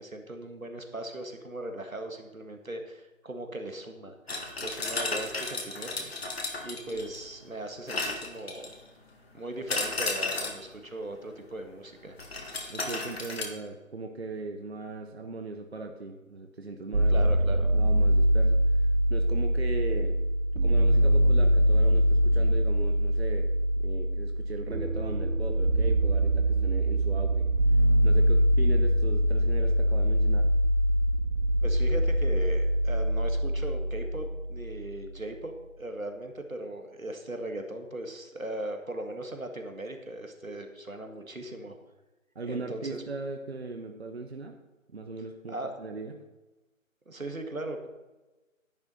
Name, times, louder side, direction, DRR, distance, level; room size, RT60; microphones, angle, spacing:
voice 1, 0.0-4.2 4.6-6.1 6.6-8.7 9.3-12.2 17.1-17.7 31.6-41.8 42.4-43.0 45.5-45.8 47.1-47.9, right 1 dB, 90° right, 5 dB, 2.0 m, -38 dB
sound 1, 4.3-7.3 7.9-8.9 9.7-10.7 12.2-13.4, left 3 dB, 50° left, 1.8 m, -33 dB
voice 2, 12.7-17.2 17.7-18.6 19.1-20.2 20.6-23.5 23.8-27.5 28.0-30.5 42.3-44.6 44.9-46.2, right 3 dB, 50° right, 5 dB, 1.0 m, -38 dB
sound 2, 16.9-34.9, equal, 70° right, 1.2 m, -24 dB
10.5 x 8.9 x 4.2 m, 1.1 s
figure-of-eight pair, 155°, 40 cm